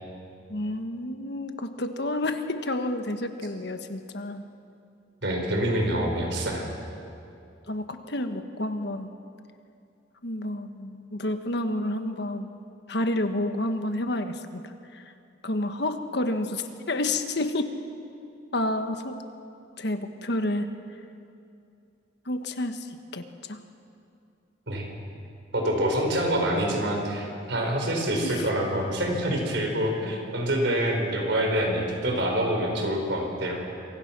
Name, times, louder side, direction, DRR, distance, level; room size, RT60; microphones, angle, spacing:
voice 1, 0.5-4.5 7.7-9.1 10.2-12.6 12.9-15.0 15.4-17.7 18.5-19.2 19.8-20.7 22.3-23.6 28.2-28.5, left 1 dB, 60° left, 7 dB, 1.4 m, -30 dB
voice 2, 5.2-6.7 24.7-24.9 25.5-33.6, right 1 dB, 65° right, 1 dB, 5.3 m, -26 dB
27.0 x 24.0 x 6.1 m, 2.6 s
head